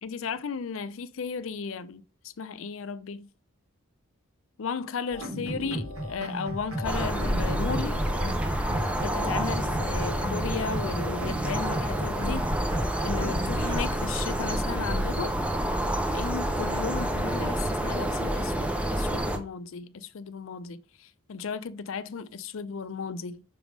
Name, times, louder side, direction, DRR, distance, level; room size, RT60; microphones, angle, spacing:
voice 1, 0.0-3.3 4.6-8.0 8.7-12.7 13.0-15.4 16.1-23.4, left 5 dB, 65° left, 0.5 m, -35 dB
sound 1, 5.1-13.8, equal, 75° right, 1.7 m, -35 dB
sound 2, 6.8-19.4, right 1 dB, 5° right, 0.6 m, -28 dB
6.0 x 3.5 x 5.1 m
head